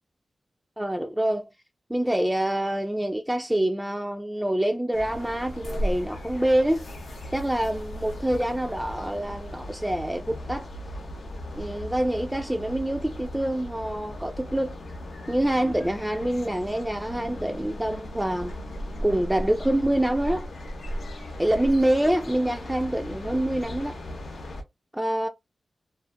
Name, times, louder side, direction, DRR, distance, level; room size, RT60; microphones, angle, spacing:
voice 1, 0.8-1.5 1.9-6.9 7.3-10.7 11.5-14.8 15.3-18.5 19.0-20.5 21.4-24.0 24.9-25.3, right 1 dB, 10° right, 0.3 m, -26 dB
sound 1, 4.9-24.6, equal, 80° left, 0.8 m, -37 dB
2.5 x 2.4 x 2.5 m
wide cardioid pair, 75°, 0 cm